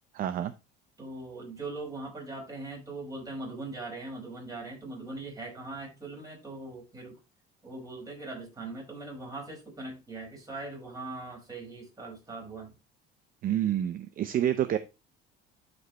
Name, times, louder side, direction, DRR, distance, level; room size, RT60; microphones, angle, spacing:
voice 1, 0.1-0.5 13.4-14.8, right 11 dB, 45° right, 0.7 m, -28 dB
voice 2, 1.0-7.2 7.6-12.7, right 2 dB, 20° right, 5.4 m, -40 dB
12.5 x 5.3 x 3.0 m
cardioid pair, 130°, 20 cm